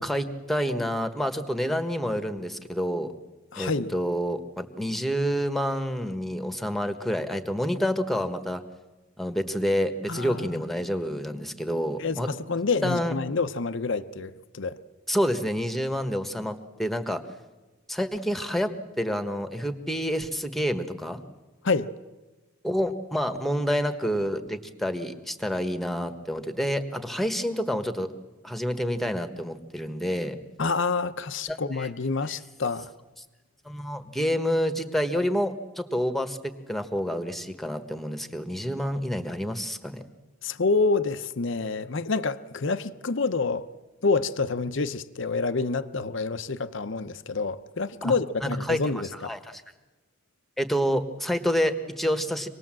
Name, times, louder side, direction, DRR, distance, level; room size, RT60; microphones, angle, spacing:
voice 1, 0.0-3.1 3.6-8.6 9.2-12.3 12.8-13.1 15.1-17.2 17.9-21.2 22.6-28.1 28.4-30.4 31.5-31.9 32.3-32.4 33.6-36.4 36.7-40.0 48.0-48.1 48.4-48.8 49.2-49.6 50.6-52.5, equal, ahead, 1.4 m, -28 dB
voice 2, 3.5-3.9 10.1-10.6 12.0-14.8 21.6-21.9 30.6-32.9 40.4-43.7 44.0-49.3, left 4 dB, 60° left, 0.8 m, -28 dB
26.0 x 19.5 x 7.6 m
head